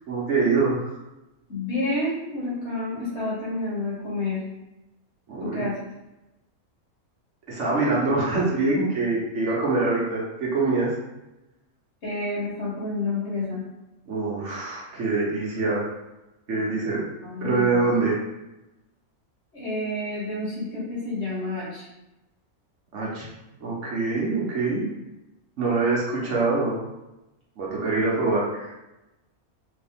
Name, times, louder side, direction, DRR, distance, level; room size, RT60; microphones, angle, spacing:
voice 1, 0.1-0.9 5.3-5.6 7.5-10.9 14.1-15.8 16.5-17.0 17.4-18.2 22.9-23.3 23.6-24.8 25.6-26.8 27.6-28.7, right 3 dB, 60° right, -4 dB, 1.1 m, -24 dB
voice 2, 1.5-4.4 5.4-5.7 12.0-13.6 17.2-17.9 19.5-21.9, left 2 dB, 55° left, -7 dB, 1.6 m, -29 dB
3.4 x 2.7 x 3.4 m, 0.97 s
omnidirectional pair, 1.5 m